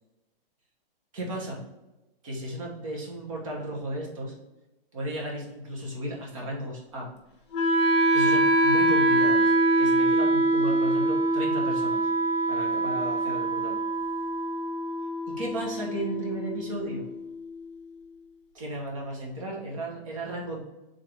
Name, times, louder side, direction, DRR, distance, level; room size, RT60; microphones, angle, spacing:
voice 1, 1.1-1.6 2.2-4.3 4.9-7.1 8.1-12.1 12.5-13.8 15.3-17.1 18.5-20.6, right 1 dB, 35° right, -2 dB, 1.2 m, -34 dB
Wind instrument woodwind instrument, 7.5-17.5, right 2 dB, 30° left, 0.8 m, -24 dB
3.7 x 3.6 x 3.4 m, 0.98 s
hypercardioid pair, 180°, 30 cm